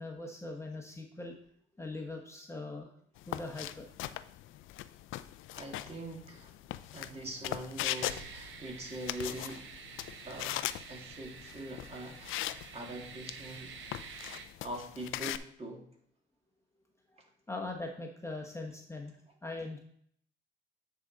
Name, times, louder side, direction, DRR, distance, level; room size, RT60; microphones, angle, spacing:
voice 1, 0.0-1.3 1.8-2.9 3.3-3.9 17.5-19.2 19.4-19.8, left 2 dB, 15° left, 1 dB, 1.0 m, -41 dB
sound 1, 3.2-15.4, left 14 dB, 85° left, 0.4 m, -40 dB
voice 2, 5.5-6.5 6.9-9.7 10.3-14.1 14.6-15.9, right 1 dB, 30° right, 1 dB, 2.2 m, -43 dB
sound 2, 7.9-14.5, right 6 dB, 75° right, 0.9 m, -49 dB
9.2 x 4.8 x 3.9 m, 0.63 s
cardioid pair, 90°, 20 cm